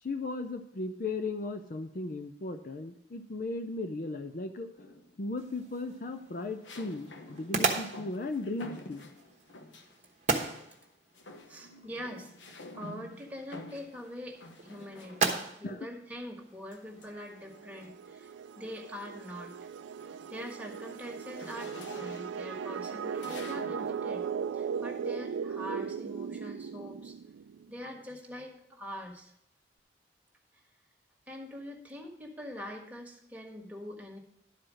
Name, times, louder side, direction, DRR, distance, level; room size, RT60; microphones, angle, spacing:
voice 1, 0.0-4.7 5.2-9.1 15.6-15.9, left 3 dB, 45° left, 7 dB, 0.5 m, -36 dB
sound 1, 4.8-5.3 6.6-10.0 10.3-10.9 11.1-15.6 16.7-18.1 18.6-18.9 19.2-24.0, left 2 dB, 85° left, 1.0 m, -49 dB
sound 2, 5.4-17.1, right 4 dB, 40° right, 1.1 m, -37 dB
voice 2, 11.5-19.6 20.0-24.3 24.5-27.2 27.7-29.3 31.3-34.2, equal, 10° right, -1 dB, 1.5 m, -44 dB
sound 3, 17.2-27.7, right 7 dB, 85° right, 0.3 m, -38 dB
11.5 x 4.7 x 6.2 m, 0.73 s
head